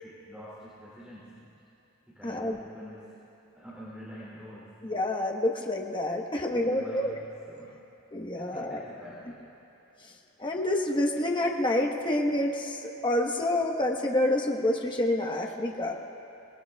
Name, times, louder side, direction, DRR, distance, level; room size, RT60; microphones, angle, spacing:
voice 1, 0.0-1.5 2.1-3.2 3.5-4.8 6.5-7.8 8.3-9.5, equal, 5° right, -10 dB, 2.7 m, -46 dB
voice 2, 2.2-2.6 4.8-7.1 8.1-8.8 10.4-16.0, left 1 dB, 25° left, 0 dB, 1.2 m, -28 dB
26.0 x 19.0 x 2.4 m, 3.0 s
head